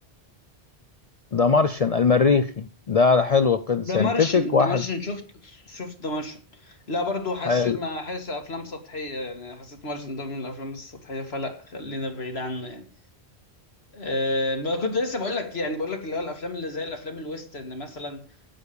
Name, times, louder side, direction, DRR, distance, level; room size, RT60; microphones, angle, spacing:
voice 1, 1.3-4.8 7.4-7.8, left 5 dB, 45° left, 0.6 m, -20 dB
voice 2, 3.8-12.8 13.9-18.3, left 2 dB, 75° left, 2.2 m, -31 dB
8.9 x 8.6 x 6.8 m
omnidirectional pair, 1.1 m